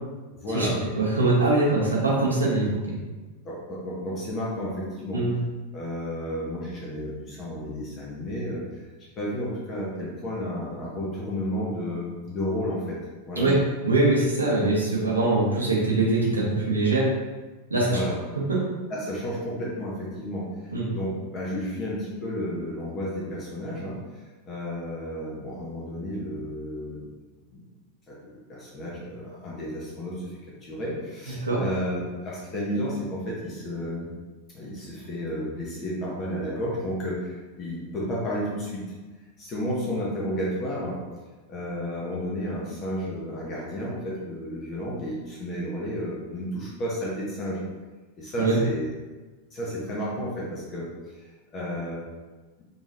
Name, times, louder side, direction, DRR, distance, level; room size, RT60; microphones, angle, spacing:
voice 1, 0.3-0.8 3.4-5.2 5.7-13.0 13.3-13.5 17.8-18.1 18.9-27.0 27.5-27.6 28.1-34.1 34.5-41.0 41.5-47.6 48.2-48.9 49.5-52.0, equal, 30° left, -6 dB, 1.0 m, -32 dB
voice 2, 1.0-3.0 5.1-5.3 13.3-13.6 13.8-17.0 17.7-18.0 20.7-20.9 31.4-31.6 48.4-48.6, right 2 dB, 75° right, -4 dB, 1.1 m, -22 dB
5.2 x 3.1 x 2.5 m, 1.3 s
figure-of-eight pair, 90°, 0 cm